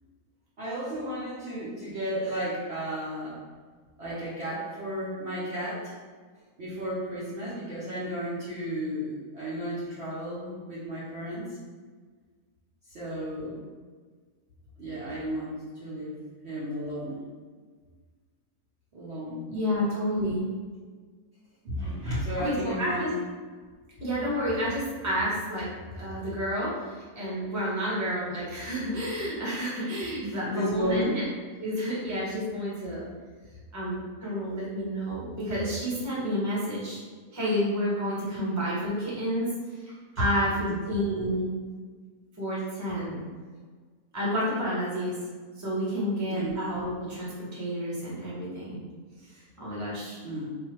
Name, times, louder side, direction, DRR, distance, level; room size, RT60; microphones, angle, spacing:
voice 1, 0.6-3.4 4.0-5.9 6.6-11.6 12.9-13.6 14.8-16.2 16.4-17.2 18.9-19.9 21.6-23.1 30.2-31.2 40.1-40.2 40.6-40.8 46.3-46.5 50.2-50.5, equal, 50° right, -9 dB, 1.0 m, -33 dB
voice 2, 19.5-20.4 22.4-23.1 24.0-31.2 31.6-33.0 33.7-37.0 37.3-39.9 40.2-41.5 42.4-43.2 44.1-45.1 45.6-48.8 49.3-50.2, equal, 15° right, -7 dB, 1.0 m, -30 dB
3.9 x 2.7 x 3.0 m, 1.5 s
omnidirectional pair, 1.6 m